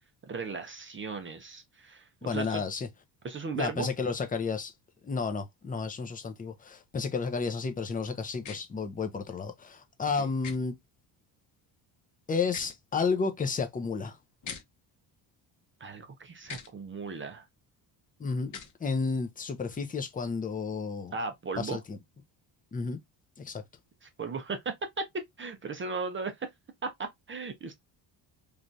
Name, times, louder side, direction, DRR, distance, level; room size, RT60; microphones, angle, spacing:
voice 1, 0.3-2.6 3.2-3.9 10.2-10.3 15.8-17.5 21.1-21.8 24.0-26.5 26.8-27.7, right 4 dB, 25° right, 0.6 m, -36 dB
voice 2, 2.2-2.9 3.5-4.7 5.0-10.7 12.3-14.2 18.2-21.1 21.6-22.0 22.7-23.0 23.4-23.6, left 4 dB, 20° left, 0.6 m, -32 dB
sound 1, 8.4-8.6 10.4-10.6 12.4-12.8 14.4-14.6 16.4-16.7 18.4-18.7, left 6 dB, 40° left, 0.9 m, -41 dB
3.2 x 2.4 x 2.6 m
cardioid pair, 115°, 45 cm